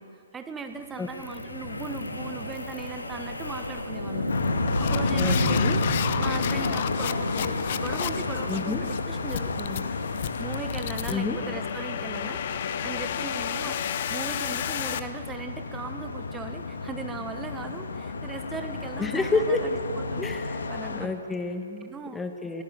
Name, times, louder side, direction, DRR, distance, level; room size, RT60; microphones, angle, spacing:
voice 1, 0.0-4.3 4.8-5.8 6.2-10.0 10.4-12.4 12.8-20.2 20.7-21.1 21.8-22.2, right 4 dB, 10° right, 7 dB, 1.2 m, -38 dB
Wind, 1.0-11.2, left 1 dB, 80° left, 2.6 m, -30 dB
sound 1, 1.2-1.4 1.8-2.1 2.5-2.9 3.4-3.7 4.3-15.0, left 9 dB, 45° left, 1.0 m, -33 dB
sound 2, 4.3-21.1, left 4 dB, 65° left, 1.7 m, -34 dB
voice 2, 5.2-5.8 8.5-8.9 11.1-11.4 19.0-19.7 20.2-20.6 20.9-22.6, left 3 dB, 10° left, 7 dB, 1.1 m, -29 dB
24.0 x 18.0 x 8.1 m, 2.6 s
figure-of-eight pair, 125°, 0 cm